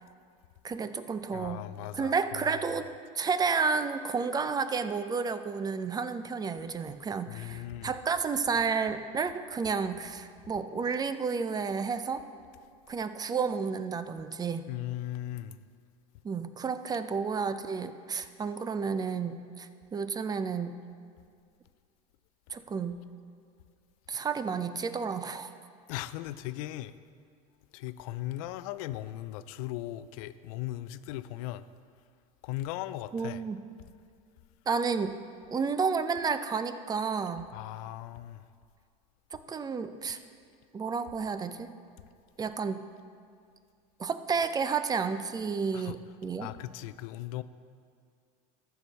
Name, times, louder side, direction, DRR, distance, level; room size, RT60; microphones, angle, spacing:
voice 1, 0.6-1.7 1.9-2.9 3.2-12.2 12.9-14.6 16.2-20.7 22.5-23.0 24.1-25.5 33.1-33.6 34.7-35.2 35.5-37.5 39.3-40.2 40.7-41.7 42.4-42.8 44.0-46.5, right 5 dB, 20° right, 11 dB, 0.5 m, -31 dB
voice 2, 1.3-2.1 7.3-8.0 14.7-15.6 25.9-26.9 27.7-31.6 32.4-33.4 37.5-38.4 45.7-45.9 46.4-47.4, left 15 dB, 75° left, 14 dB, 0.4 m, -38 dB
14.0 x 4.7 x 5.4 m, 2.2 s
supercardioid pair, 105°, 18 cm